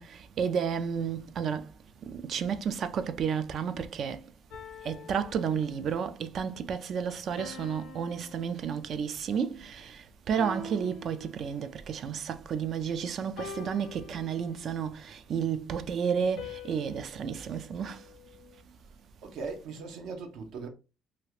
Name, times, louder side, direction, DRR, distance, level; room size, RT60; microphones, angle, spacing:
voice 1, 0.0-1.7 2.1-4.2 4.8-18.0, right 7 dB, 55° right, 0.3 m, -32 dB
sound 1, 4.5-6.0 7.4-9.2 10.4-11.8 13.4-14.8 16.4-18.6, left 2 dB, 80° left, 0.6 m, -45 dB
voice 2, 19.2-20.7, right 4 dB, 75° right, 0.8 m, -39 dB
2.8 x 2.4 x 3.1 m
cardioid pair, 110°, 0 cm